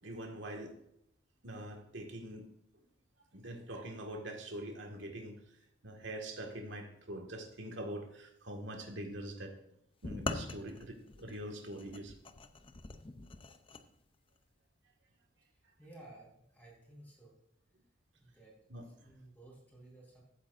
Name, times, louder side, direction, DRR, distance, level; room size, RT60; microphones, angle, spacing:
voice 1, 0.0-0.8 1.4-2.5 3.3-5.4 5.8-9.5 10.0-12.1 18.7-18.9, right 1 dB, 75° right, 3 dB, 1.9 m, -44 dB
sound 1, 10.0-13.8, left 3 dB, 30° left, 0.6 m, -43 dB
voice 2, 15.8-17.3 18.2-18.5 19.0-20.2, right 2 dB, 10° left, -3 dB, 4.4 m, -55 dB
14.5 x 8.6 x 2.6 m, 0.77 s
head